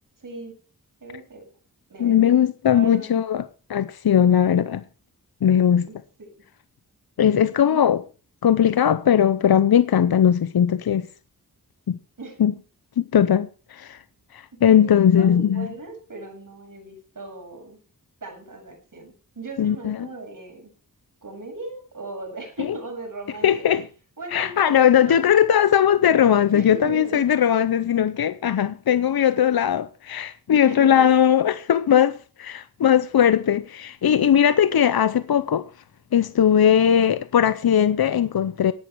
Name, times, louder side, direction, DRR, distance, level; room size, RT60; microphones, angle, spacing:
voice 1, 0.2-0.5 1.0-1.5 1.9-3.3 5.8-6.3 7.7-7.8 12.2-12.4 14.7-17.8 18.2-20.7 21.2-23.7 24.2-25.2 26.5-27.4 30.6-31.2 36.6-36.8, right 2 dB, 60° right, 7.5 m, -38 dB
voice 2, 2.0-4.8 5.4-5.9 7.2-8.0 8.4-11.1 11.9-12.0 12.4-12.5 13.0-14.0 14.3-15.7 19.6-20.1 22.6-22.8 23.4-23.9 24.3-35.7 36.1-38.7, left 9 dB, 75° left, 0.7 m, -19 dB
18.0 x 11.5 x 4.6 m
wide cardioid pair, 70°, 36 cm